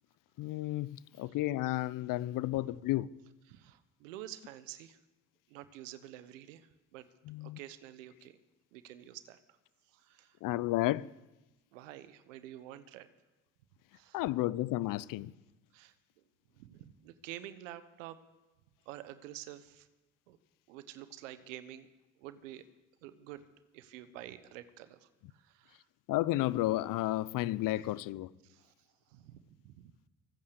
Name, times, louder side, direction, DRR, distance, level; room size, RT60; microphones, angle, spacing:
voice 1, 0.4-3.1 7.3-7.6 10.4-11.1 14.1-15.3 26.1-28.3, left 16 dB, 60° left, 0.6 m, -32 dB
voice 2, 3.5-5.0 5.5-7.0 7.4-8.4 8.7-9.4 9.9-10.4 11.7-13.1 13.9-14.2 15.7-15.9 16.5-18.2 18.9-19.9 20.3-20.4 20.7-21.9 22.2-22.6 23.0-23.4 23.7-25.9 27.8-27.9 28.4-29.9, right 13 dB, 80° right, 1.1 m, -49 dB
23.5 x 8.6 x 6.8 m
hypercardioid pair, 55°, 38 cm